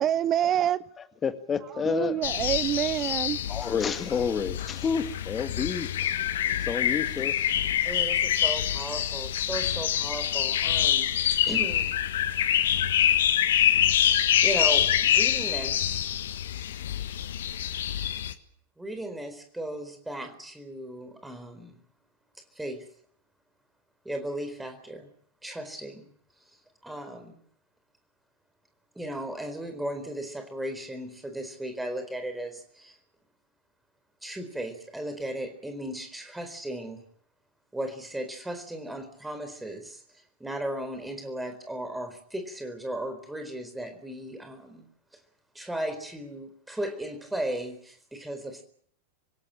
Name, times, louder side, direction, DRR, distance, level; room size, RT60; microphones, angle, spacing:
voice 1, 0.0-0.8 1.8-3.4, right 11 dB, 30° right, 0.9 m, -26 dB
voice 2, 1.2-2.2 3.5-6.1 6.7-7.4, left 6 dB, 20° left, 1.9 m, -29 dB
sound 1, 2.2-18.3, left 10 dB, 60° left, 1.3 m, -26 dB
voice 3, 7.8-11.2 11.5-11.9 14.4-16.1 18.8-21.7 22.5-22.8 24.0-25.1 25.4-26.1 26.8-27.4 28.9-33.0 34.2-37.0 37.7-40.0 40.4-44.9 45.5-48.6, right 1 dB, 5° right, 4.2 m, -36 dB
26.0 x 17.0 x 8.9 m
figure-of-eight pair, 90°, 0 cm